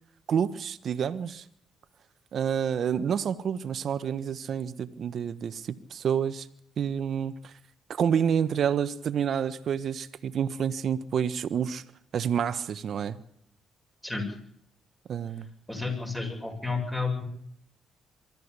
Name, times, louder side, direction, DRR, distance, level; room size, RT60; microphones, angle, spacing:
voice 1, 0.3-1.4 2.3-6.5 6.8-7.5 7.9-11.8 12.1-13.2 15.1-15.5, right 8 dB, 60° right, 12 dB, 1.4 m, -28 dB
voice 2, 15.7-17.2, left 4 dB, 10° left, 4 dB, 7.5 m, -31 dB
24.0 x 14.0 x 8.4 m, 0.69 s
cardioid pair, 90°, 0 cm